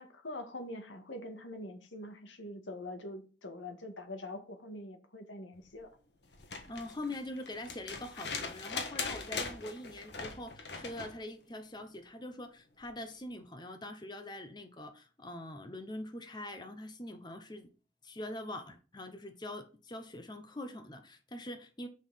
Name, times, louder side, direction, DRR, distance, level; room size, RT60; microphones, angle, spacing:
voice 1, 0.0-5.9, left 1 dB, 85° left, 1.9 m, -44 dB
sound 1, 6.3-11.2 12.8-12.9, left 5 dB, 65° left, 1.6 m, -40 dB
voice 2, 6.7-17.7 18.0-21.9, left 1 dB, 25° left, 0.9 m, -43 dB
6.3 x 5.6 x 5.7 m
head